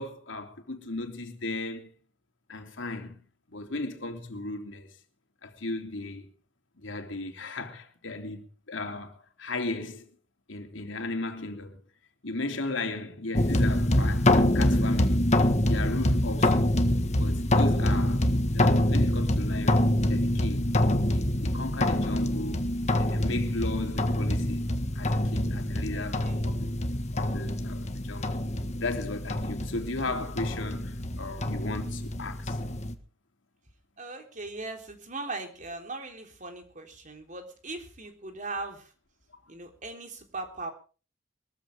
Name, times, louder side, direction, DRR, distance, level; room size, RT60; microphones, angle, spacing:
voice 1, 0.0-1.9 2.5-3.2 3.5-4.9 5.4-6.3 6.8-10.1 10.5-11.8 12.2-15.3 15.6-16.7 17.1-20.7 21.1-22.6 22.9-24.6 24.9-26.8 27.1-28.4 28.8-32.6, left 2 dB, 75° left, 3.0 m, -36 dB
sound 1, 13.3-32.9, left 1 dB, 35° left, 1.6 m, -26 dB
voice 2, 25.9-26.4 34.0-38.9 39.5-40.7, right 3 dB, 40° right, 3.6 m, -39 dB
22.5 x 14.5 x 3.6 m
head